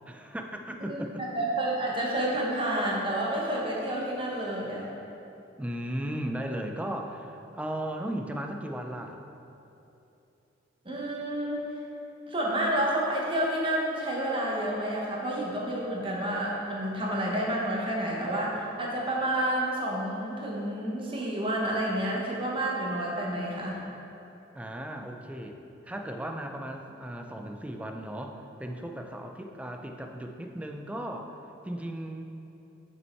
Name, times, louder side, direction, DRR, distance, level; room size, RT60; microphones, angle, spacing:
voice 1, 0.1-1.2 2.3-2.4 5.6-9.2 24.5-32.2, right 1 dB, 5° right, 3 dB, 0.4 m, -36 dB
voice 2, 0.8-4.9 10.8-11.6 12.3-23.8, right 1 dB, 25° right, -3 dB, 1.0 m, -29 dB
6.2 x 5.4 x 4.4 m, 2.8 s
head